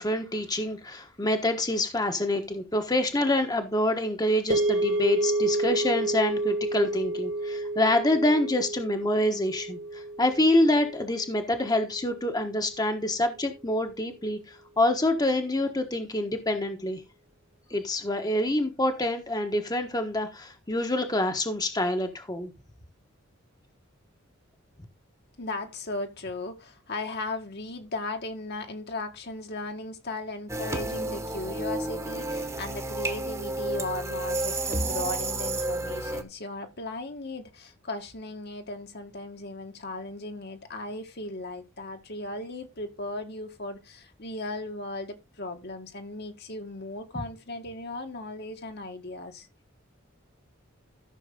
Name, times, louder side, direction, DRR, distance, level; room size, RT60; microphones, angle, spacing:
voice 1, 0.0-17.0 17.7-22.5, left 1 dB, 20° left, 1.2 m, -26 dB
sound 1, 4.5-12.8, right 2 dB, 65° right, 2.5 m, -30 dB
voice 2, 25.4-49.5, left 2 dB, 55° left, 1.8 m, -37 dB
sound 2, 30.5-36.2, right 2 dB, 15° right, 1.3 m, -31 dB
14.0 x 6.4 x 3.8 m
head